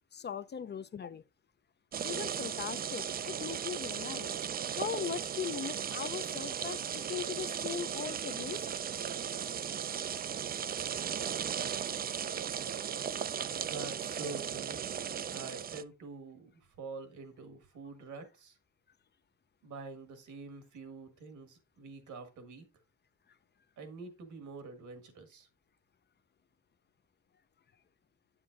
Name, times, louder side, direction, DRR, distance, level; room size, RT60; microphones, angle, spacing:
voice 1, 0.1-1.2 2.0-4.3 4.7-8.7, left 8 dB, 35° left, 0.5 m, -39 dB
sound 1, 1.9-15.8, right 8 dB, 30° right, 0.4 m, -36 dB
voice 2, 13.6-14.8 15.3-18.6 19.6-22.7 23.8-25.5, right 3 dB, 75° right, 1.8 m, -46 dB
7.6 x 7.3 x 2.4 m
cardioid pair, 90°, 30 cm